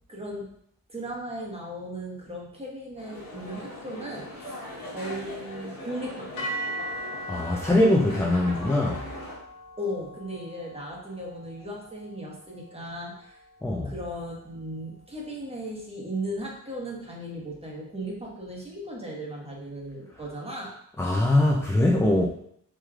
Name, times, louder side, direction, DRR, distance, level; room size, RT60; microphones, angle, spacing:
voice 1, 0.1-0.5 0.9-6.5 9.8-13.4 13.8-20.8, equal, 15° right, -3 dB, 1.1 m, -37 dB
sound 1, 3.0-9.4, left 1 dB, 75° left, 1.3 m, -40 dB
sound 2, 6.4-14.6, right 1 dB, 55° left, 1.0 m, -40 dB
voice 2, 7.3-9.1 13.6-13.9 21.0-22.3, left 1 dB, 10° left, -2 dB, 0.3 m, -22 dB
4.8 x 3.1 x 2.3 m, 0.69 s
wide cardioid pair, 120°, 35 cm